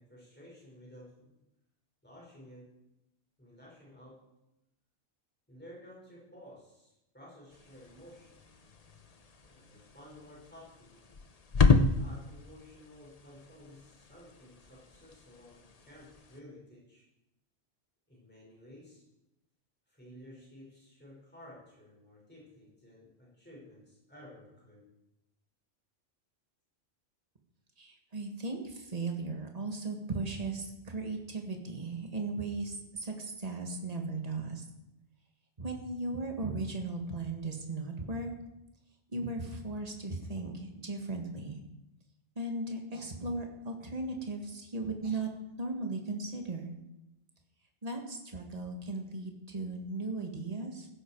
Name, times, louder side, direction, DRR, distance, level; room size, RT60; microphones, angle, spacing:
voice 1, 0.0-1.3 2.0-2.8 3.4-4.2 5.5-8.5 9.5-11.1 12.0-17.0 18.1-19.0 19.9-24.9, left 1 dB, 10° left, -5 dB, 5.9 m, -54 dB
sound 1, 7.5-16.4, left 4 dB, 35° left, 0.9 m, -32 dB
voice 2, 27.8-34.6 35.6-38.3 39.1-41.6 42.4-45.3 45.6-46.7 47.8-50.9, right 3 dB, 35° right, 3 dB, 1.9 m, -37 dB
16.0 x 12.0 x 4.7 m, 0.91 s
omnidirectional pair, 1.2 m